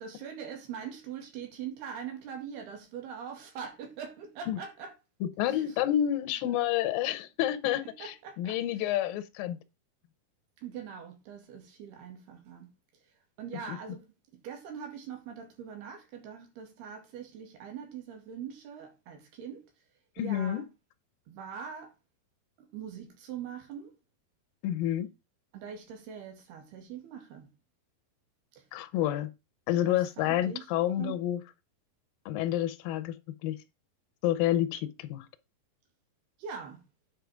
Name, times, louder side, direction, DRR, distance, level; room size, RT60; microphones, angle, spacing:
voice 1, 0.0-4.9 5.5-5.8 8.0-8.9 10.6-12.7 13.4-14.1 14.3-19.7 20.2-20.6 21.3-21.9 22.6-23.9 25.5-27.5 28.6-28.7 29.8-30.7 31.0-31.2 36.4-36.8, right 7 dB, 90° right, 4.3 m, -42 dB
voice 2, 5.2-9.6 13.7-13.8 20.2-20.6 24.6-25.1 28.7-29.3 29.7-31.4 32.3-33.2 33.4-33.6 34.2-35.3, left 12 dB, 75° left, 2.4 m, -29 dB
9.3 x 5.2 x 5.0 m
omnidirectional pair, 4.4 m